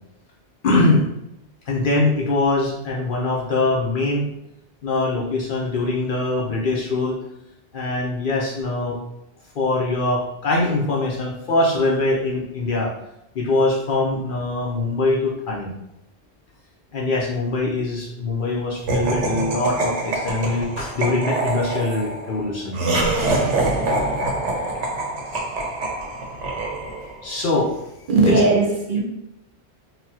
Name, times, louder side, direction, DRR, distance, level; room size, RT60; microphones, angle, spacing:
voice 1, 0.6-1.1 1.7-4.3 4.8-7.2 7.7-9.0 9.6-12.9 13.3-15.7 16.9-22.8 27.2-27.8 28.2-28.4, left 2 dB, 60° left, -2 dB, 0.6 m, -22 dB
Laughter, 18.9-27.2, right 2 dB, 90° right, 1.0 m, -25 dB
voice 2, 28.1-29.0, right 2 dB, 55° right, -2 dB, 0.8 m, -17 dB
4.0 x 2.1 x 2.7 m, 0.85 s
omnidirectional pair, 1.1 m